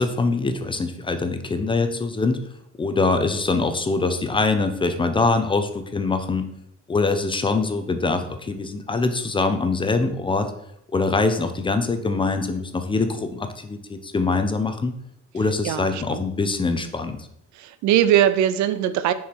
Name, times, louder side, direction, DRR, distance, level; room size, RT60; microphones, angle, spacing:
voice 1, 0.0-2.4 2.8-6.5 6.9-10.5 10.9-14.9 15.3-17.3, left 3 dB, 15° left, 8 dB, 0.6 m, -23 dB
voice 2, 17.6-19.1, right 11 dB, 75° right, 13 dB, 0.6 m, -20 dB
7.0 x 4.7 x 4.4 m, 0.76 s
cardioid pair, 150°, 29 cm